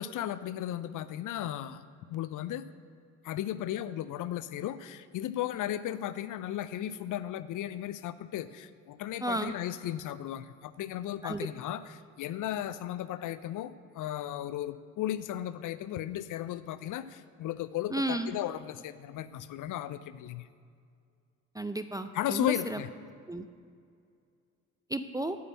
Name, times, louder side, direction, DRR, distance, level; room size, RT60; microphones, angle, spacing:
voice 1, 0.0-1.8 2.1-2.6 3.2-20.5 22.1-22.9, left 12 dB, 50° left, 14 dB, 0.5 m, -35 dB
voice 2, 9.2-9.5 11.2-11.4 17.9-18.3 21.5-22.8 23.3-23.5 24.9-25.4, right 1 dB, 10° right, 9 dB, 0.4 m, -33 dB
8.5 x 5.6 x 7.4 m, 2.2 s
hypercardioid pair, 50°, 41 cm